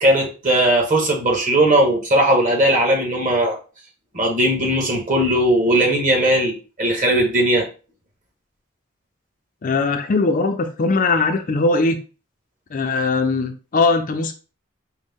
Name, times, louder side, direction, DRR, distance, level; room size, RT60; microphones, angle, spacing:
voice 1, 0.0-3.6 4.1-7.7, right 1 dB, 40° right, 1 dB, 1.3 m, -18 dB
voice 2, 9.6-12.0 12.7-14.3, left 3 dB, 40° left, 6 dB, 0.4 m, -20 dB
5.0 x 2.1 x 3.6 m, 0.35 s
head